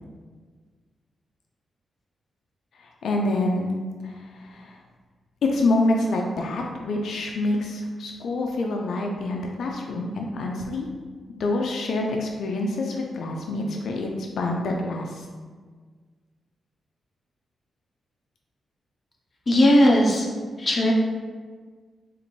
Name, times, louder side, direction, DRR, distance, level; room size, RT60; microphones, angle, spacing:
voice 1, 2.8-3.7 4.0-4.8 5.4-10.9 11.4-14.1 14.4-15.2, left 2 dB, 75° left, 1 dB, 0.3 m, -26 dB
voice 2, 19.5-20.3 20.6-20.9, left 1 dB, 30° left, -2 dB, 0.5 m, -17 dB
4.0 x 2.5 x 3.0 m, 1.5 s
wide cardioid pair, 145°, 0 cm